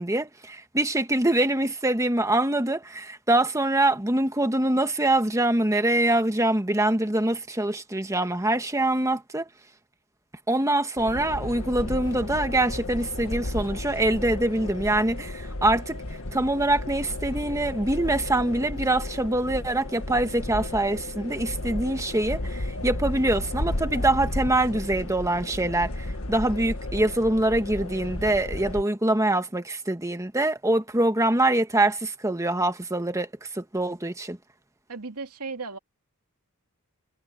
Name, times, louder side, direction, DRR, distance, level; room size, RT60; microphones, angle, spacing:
voice 1, 0.0-9.5 10.5-16.0 16.3-34.4, right 1 dB, 15° right, 1.6 m, -24 dB
sound 1, 11.0-28.8, left 1 dB, 65° left, 1.7 m, -33 dB
voice 2, 34.9-35.8, right 4 dB, 85° right, 2.5 m, -35 dB
head